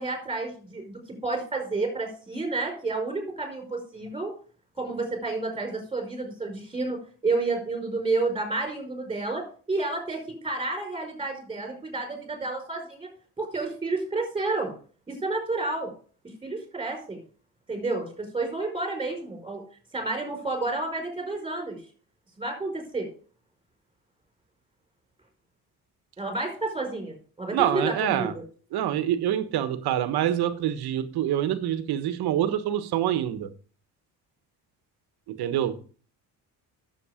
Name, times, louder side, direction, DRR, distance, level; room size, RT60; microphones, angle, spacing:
voice 1, 0.0-4.3 4.8-7.0 7.2-9.4 9.7-13.1 13.4-14.7 15.1-15.9 16.4-17.2 17.7-18.1 18.3-19.6 19.9-21.8 22.4-23.1 26.2-28.4, right 3 dB, 15° right, 5.1 m, -30 dB
voice 2, 27.5-28.3 28.7-33.5 35.4-35.7, right 11 dB, 70° right, 1.4 m, -26 dB
10.5 x 7.8 x 5.0 m
cardioid pair, 110°, 39 cm